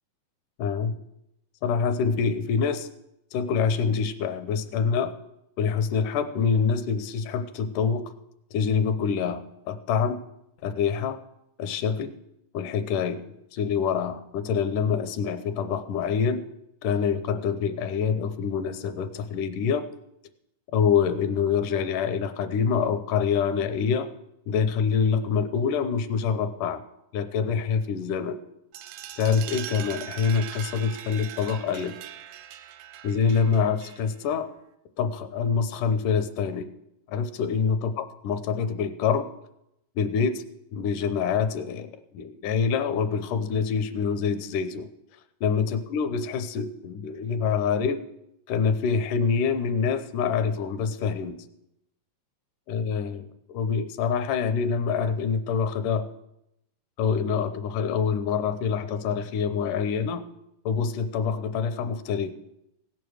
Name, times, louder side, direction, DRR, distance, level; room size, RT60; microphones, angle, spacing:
voice 1, 0.6-1.0 1.6-2.9 3.3-5.1 5.6-8.0 8.5-10.2 10.6-11.2 11.6-12.2 12.5-16.4 16.8-19.9 20.7-24.1 24.5-26.8 27.1-28.4 29.2-31.9 33.0-34.5 35.0-36.7 37.1-39.3 40.0-40.4 40.7-44.9 45.4-48.0 48.5-51.4 52.7-56.1 57.0-60.2 60.7-62.3, left 6 dB, 75° left, 11 dB, 2.3 m, -26 dB
sound 1, 28.7-34.3, right 11 dB, 85° right, 2.4 m, -41 dB
16.5 x 9.0 x 6.4 m, 0.82 s
omnidirectional pair, 3.8 m